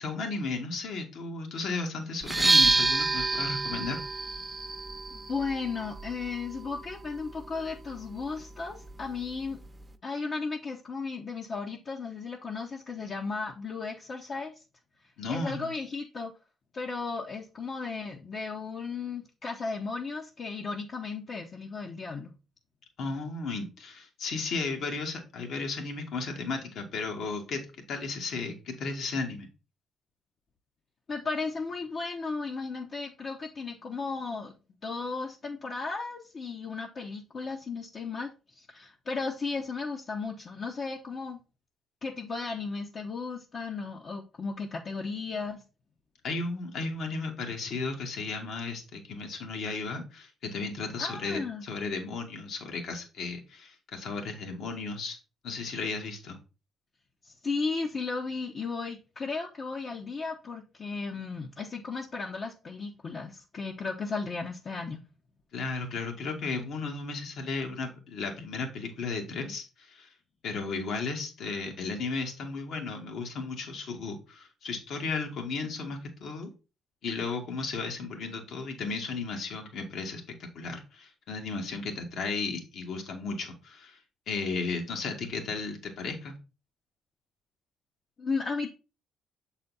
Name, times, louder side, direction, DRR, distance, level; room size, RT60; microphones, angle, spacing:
voice 1, 0.0-4.0 15.2-15.7 23.0-27.6 27.9-29.5 46.2-55.2 55.4-56.4 65.5-70.1 70.4-76.5 77.0-80.2 80.5-84.0 84.3-86.4, left 4 dB, 70° left, 3 dB, 1.7 m, -34 dB
sound 1, 2.2-10.0, right 3 dB, 20° right, 0.8 m, -30 dB
voice 2, 5.1-9.6 10.0-14.6 15.3-16.3 16.7-22.3 31.1-34.5 34.8-41.4 42.0-45.6 51.0-51.6 57.2-65.0 88.2-88.7, left 4 dB, 50° left, 1 dB, 1.0 m, -35 dB
6.9 x 4.1 x 4.1 m, 0.32 s
supercardioid pair, 60°, 0 cm